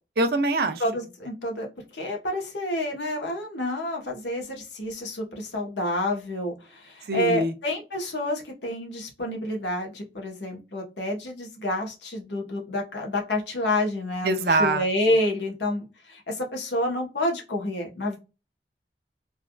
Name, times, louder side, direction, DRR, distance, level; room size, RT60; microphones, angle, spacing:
voice 1, 0.2-0.8 7.1-7.5 14.2-14.9, right 2 dB, 55° right, 0.5 m, -23 dB
voice 2, 0.8-18.2, left 1 dB, 80° left, 1.0 m, -29 dB
3.3 x 2.4 x 2.3 m
head